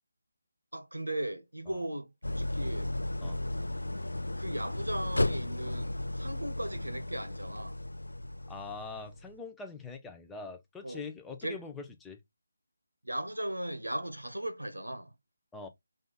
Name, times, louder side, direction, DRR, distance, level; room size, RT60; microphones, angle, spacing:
voice 1, 0.7-2.9 4.4-7.8 10.8-11.0 11.4-11.6 13.0-15.1, right 1 dB, 90° right, 0.8 m, -37 dB
Idling, 2.2-9.3, left 1 dB, 85° left, 0.3 m, -34 dB
voice 2, 8.5-12.2 15.5-15.7, left 4 dB, 5° left, 0.6 m, -43 dB
3.8 x 2.6 x 3.9 m
figure-of-eight pair, 155°, 0 cm